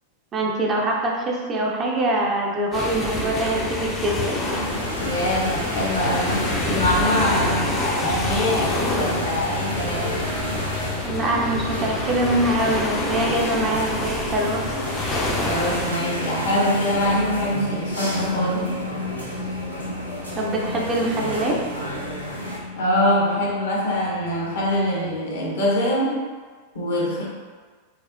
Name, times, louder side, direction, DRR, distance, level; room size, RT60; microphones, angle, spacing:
voice 1, 0.3-4.3 11.0-14.6 20.4-21.6, right 1 dB, 25° right, -2 dB, 0.5 m, -24 dB
sound 1, 2.7-15.9, left 2 dB, 25° left, 0.5 m, -28 dB
sound 2, 4.1-22.6, equal, 90° right, 0.6 m, -31 dB
voice 2, 5.0-10.3 13.1-13.3 15.4-18.7 22.8-26.2 26.7-27.2, left 1 dB, 60° left, -4 dB, 0.8 m, -24 dB
sound 3, 9.1-25.2, left 2 dB, 75° left, 0.5 m, -36 dB
4.3 x 2.0 x 2.5 m, 1.5 s
figure-of-eight pair, 90°, 0 cm